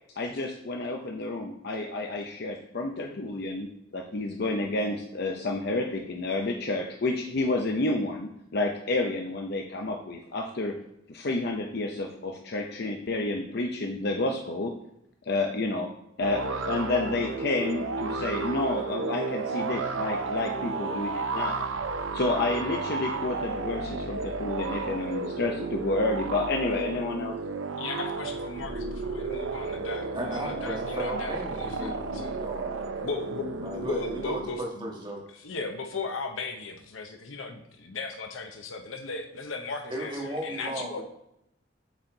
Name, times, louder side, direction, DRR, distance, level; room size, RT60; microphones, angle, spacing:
voice 1, 0.2-3.7 3.9-10.7 11.1-14.7 15.3-15.9 16.2-21.7 22.1-27.4, left 2 dB, 55° left, 2 dB, 0.7 m, -30 dB
sound 1, 16.2-34.6, right 4 dB, 90° right, 0.6 m, -32 dB
voice 2, 27.8-32.4 33.0-33.5 33.8-34.9 35.3-41.0, left 3 dB, 90° left, 5 dB, 0.8 m, -37 dB
voice 3, 30.1-32.7 33.6-35.2 39.9-41.0, right 1 dB, 25° right, -1 dB, 1.6 m, -35 dB
8.0 x 4.3 x 3.9 m, 0.80 s
head